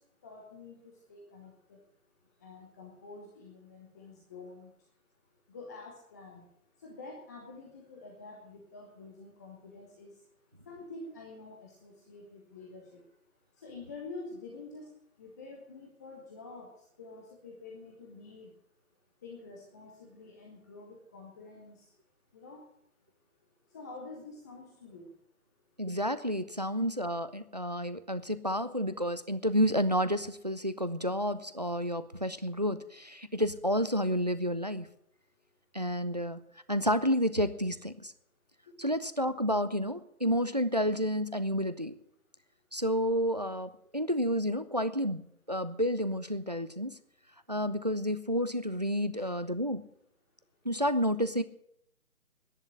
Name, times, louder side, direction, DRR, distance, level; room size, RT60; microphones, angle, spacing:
voice 1, 0.2-1.8 2.4-4.7 5.5-6.4 6.8-10.1 10.7-12.8 13.6-14.9 15.2-16.7 17.0-18.5 19.2-21.8 22.3-22.6 23.7-25.1 49.1-49.3, left 3 dB, 10° left, -1 dB, 1.0 m, -47 dB
voice 2, 25.8-34.9 35.7-36.4 36.7-38.1 38.8-41.9 42.7-46.9 47.5-49.8 50.6-51.4, equal, 30° right, 13 dB, 0.5 m, -30 dB
10.5 x 10.5 x 9.8 m, 0.73 s
figure-of-eight pair, 145°, 44 cm